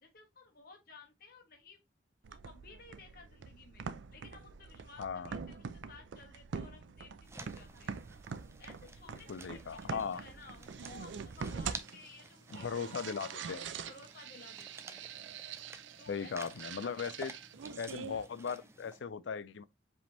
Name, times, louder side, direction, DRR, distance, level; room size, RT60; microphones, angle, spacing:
voice 1, 0.0-1.8 2.3-3.8 4.1-8.0 8.6-12.7 13.0-13.1 13.3-13.5 13.9-15.0 16.0-16.5 16.8-16.9 18.6-18.7, left 4 dB, 50° left, 1.2 m, -56 dB
sound 1, 2.2-18.2, right 6 dB, 75° right, 0.4 m, -45 dB
voice 2, 5.0-5.3 9.3-10.2 12.5-13.6 16.1-17.3 17.8-19.6, left 6 dB, 75° left, 0.4 m, -38 dB
sound 2, 7.2-19.0, right 3 dB, 15° right, 0.4 m, -52 dB
5.0 x 3.5 x 2.9 m
head